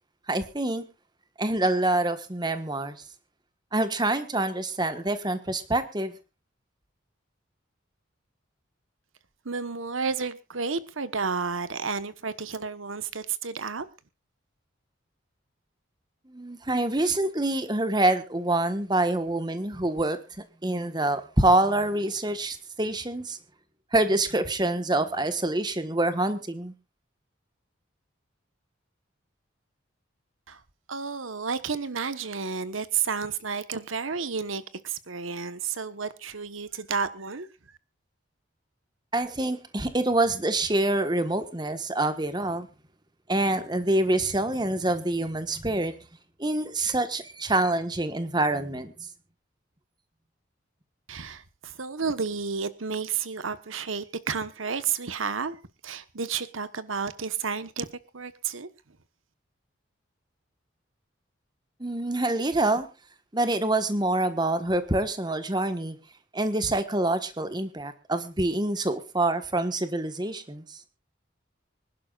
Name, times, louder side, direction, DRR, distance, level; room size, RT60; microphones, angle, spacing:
voice 1, 0.3-0.8 1.4-3.0 3.7-6.1 16.3-23.4 23.9-26.7 39.1-42.7 43.3-45.9 46.4-48.9 61.8-62.9 63.3-66.0 66.3-70.8, right 2 dB, 20° right, 1.4 m, -26 dB
voice 2, 9.4-13.9 30.5-30.6 30.9-37.5 51.1-55.6 55.8-57.9 58.1-58.7, right 5 dB, 90° right, 1.2 m, -31 dB
25.5 x 11.5 x 2.4 m
head